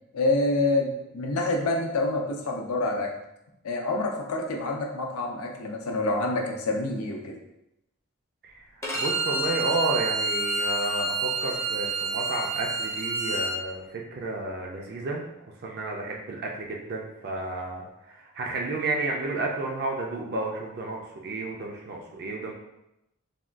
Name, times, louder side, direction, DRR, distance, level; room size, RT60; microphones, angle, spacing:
voice 1, 0.1-3.1 3.6-7.4, left 2 dB, 85° left, 1 dB, 0.5 m, -27 dB
Bowed string instrument, 8.8-13.5, right 2 dB, 15° left, 0.4 m, -28 dB
voice 2, 8.9-15.3 15.6-22.5, right 2 dB, 50° right, 0 dB, 0.4 m, -31 dB
3.4 x 2.2 x 2.4 m, 0.86 s
head